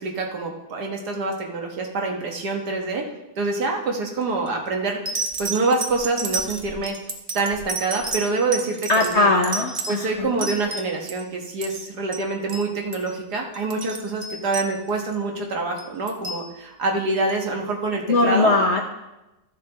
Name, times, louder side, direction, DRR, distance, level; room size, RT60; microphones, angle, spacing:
voice 1, 0.0-3.1 3.4-6.9 7.3-9.3 9.9-18.5, right 3 dB, 65° right, 1 dB, 1.8 m, -26 dB
sound 1, 4.2-4.5 5.1-11.2 11.5-11.9 12.1-12.2 12.5-12.7 12.9-13.1 13.5-15.2 15.8-16.4 17.3-17.4, right 3 dB, 40° right, 1.1 m, -31 dB
voice 2, 8.9-10.5 18.1-18.8, left 3 dB, 50° left, 2 dB, 0.9 m, -20 dB
14.0 x 7.3 x 3.3 m, 0.98 s
omnidirectional pair, 1.9 m